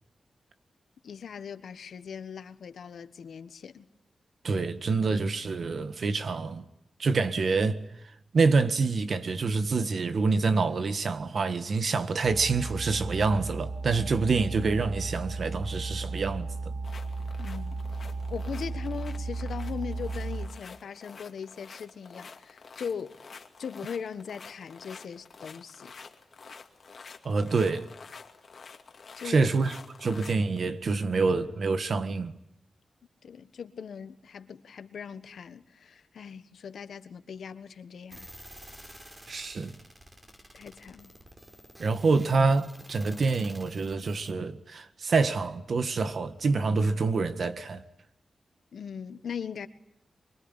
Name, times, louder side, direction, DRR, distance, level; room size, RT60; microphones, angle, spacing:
voice 1, 1.0-3.8 17.4-17.9 18.3-23.2 23.6-25.9 29.1-29.5 33.2-38.3 40.5-41.1 48.7-49.7, left 7 dB, 90° left, 1.4 m, -39 dB
voice 2, 4.4-6.7 7.0-7.8 8.3-16.7 27.2-27.9 29.2-32.4 39.3-39.8 41.8-47.8, right 4 dB, 60° right, 1.7 m, -26 dB
sound 1, 12.2-20.5, right 3 dB, 80° right, 2.5 m, -35 dB
sound 2, 16.8-30.6, left 5 dB, 55° left, 2.3 m, -49 dB
sound 3, 38.1-44.3, equal, 15° right, 5.0 m, -50 dB
24.5 x 23.5 x 9.9 m
wide cardioid pair, 125°, 0 cm